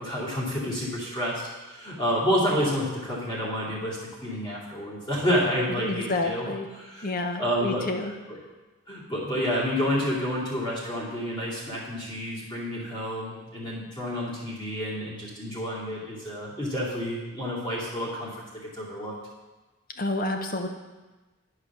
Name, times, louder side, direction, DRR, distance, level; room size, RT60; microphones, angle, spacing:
voice 1, 0.0-1.4 1.7-6.5 6.8-7.1 7.4-8.4 8.9-18.3 18.8-19.1, equal, 20° left, -7 dB, 2.6 m, -29 dB
voice 2, 5.7-6.7 7.0-8.1 20.0-20.7, left 2 dB, 40° left, 5 dB, 0.8 m, -29 dB
10.5 x 4.9 x 6.1 m, 1.2 s
head